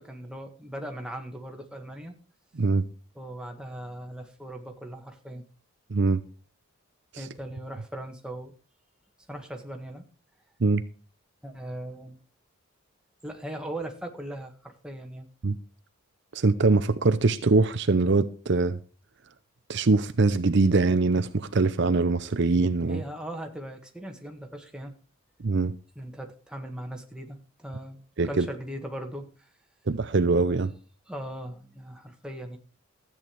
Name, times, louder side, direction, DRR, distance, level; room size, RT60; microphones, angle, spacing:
voice 1, 0.0-2.2 3.1-5.4 7.2-8.5 9.3-10.0 11.4-12.2 13.2-15.3 22.9-24.9 25.9-29.5 31.1-32.6, right 1 dB, 5° right, 1.6 m, -39 dB
voice 2, 2.5-2.9 5.9-6.2 7.1-7.3 10.6-10.8 15.4-15.6 16.3-18.8 19.7-23.0 25.4-25.8 28.2-28.5 29.9-30.7, right 3 dB, 50° right, 0.6 m, -23 dB
13.5 x 8.8 x 4.5 m
head